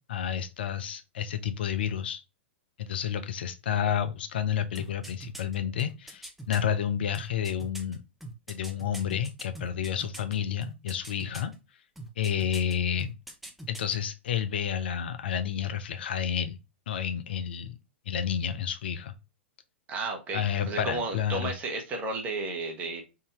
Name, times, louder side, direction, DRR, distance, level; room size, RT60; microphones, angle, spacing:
voice 1, 0.1-2.2 2.8-8.0 8.5-11.5 12.2-13.2 13.7-16.6 16.9-17.7 18.1-19.1 20.3-21.5, left 8 dB, 55° left, 0.4 m, -30 dB
sound 1, 4.7-6.6 7.1-10.3 10.6-11.5 12.0-12.7 13.0-13.9 14.2-14.3, right 2 dB, ahead, 0.6 m, -42 dB
voice 2, 19.9-23.0, right 3 dB, 25° right, 1.0 m, -33 dB
3.7 x 2.6 x 2.9 m
figure-of-eight pair, 100°, 6 cm